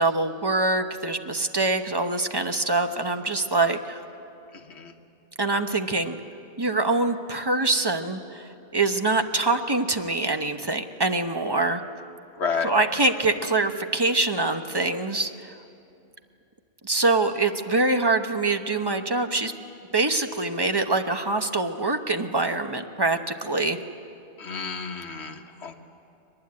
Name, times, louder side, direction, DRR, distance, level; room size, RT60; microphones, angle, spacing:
voice 1, 0.0-4.0 5.4-6.2 6.6-11.8 12.6-15.5 16.8-19.5 19.9-23.8, right 2 dB, 20° right, 7 dB, 0.9 m, -24 dB
voice 2, 4.5-4.9 12.4-12.7 24.4-25.8, left 5 dB, 60° left, 4 dB, 1.6 m, -31 dB
22.5 x 20.0 x 9.7 m, 2.7 s
omnidirectional pair, 1.3 m